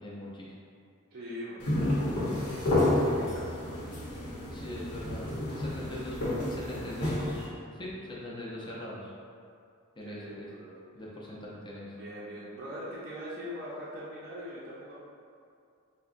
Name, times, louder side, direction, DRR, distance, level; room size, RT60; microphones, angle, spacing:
voice 1, 0.0-0.5 4.5-5.3 5.6-9.1 10.0-10.5 10.9-11.9, left 1 dB, 20° left, -5 dB, 0.5 m, -41 dB
voice 2, 1.1-1.7 2.7-3.8 10.0-10.7 11.9-15.0, equal, 45° right, -8 dB, 0.5 m, -42 dB
sound 1, 1.6-7.4, left 1 dB, 80° left, 0.9 m, -30 dB
4.7 x 2.1 x 2.5 m, 2.4 s
head